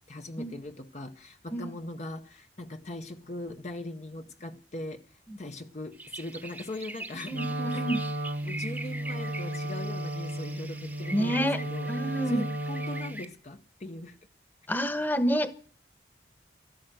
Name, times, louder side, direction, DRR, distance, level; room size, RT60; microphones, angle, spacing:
voice 1, 0.1-5.0 5.4-7.4 7.7-7.8 8.4-11.9 12.3-14.2, left 1 dB, 40° left, 0.9 m, -40 dB
sound 1, 5.9-13.2, right 2 dB, 10° right, 1.0 m, -43 dB
voice 2, 7.3-8.0 11.1-11.6 11.9-12.4 14.7-15.5, equal, 10° left, 1.1 m, -28 dB
Wind instrument woodwind instrument, 7.3-13.3, right 1 dB, 60° right, 0.9 m, -34 dB
13.5 x 13.0 x 7.7 m
head